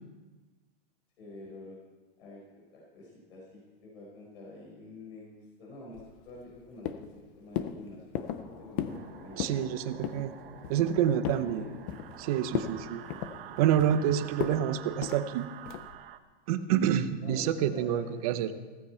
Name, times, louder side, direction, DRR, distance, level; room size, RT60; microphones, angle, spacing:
voice 1, 1.2-1.8 2.2-2.4 2.7-8.1 8.6-10.1 11.3-11.7 14.0-14.2 17.2-18.5, left 2 dB, 85° left, -3 dB, 4.7 m, -48 dB
sound 1, 5.9-6.6 6.8-7.2 7.6-7.8 8.1-8.4 8.8-9.0 9.3-9.6 10.0-10.3 10.6-11.5 11.9-12.2 12.5-12.8 13.1-14.0 14.4-14.6 15.0-15.2 15.7-15.9, left 10 dB, 20° left, 0.4 m, -35 dB
sound 2, 8.2-15.0, left 2 dB, 65° left, 3.9 m, -53 dB
sound 3, 8.9-16.2, right 11 dB, 65° right, 1.0 m, -48 dB
voice 2, 9.4-10.3 10.7-11.7 12.2-13.0 13.5-15.5 16.5-18.5, right 10 dB, 40° right, 11 dB, 0.7 m, -28 dB
16.0 x 14.5 x 4.4 m, 1.3 s
supercardioid pair, 175°, 30 cm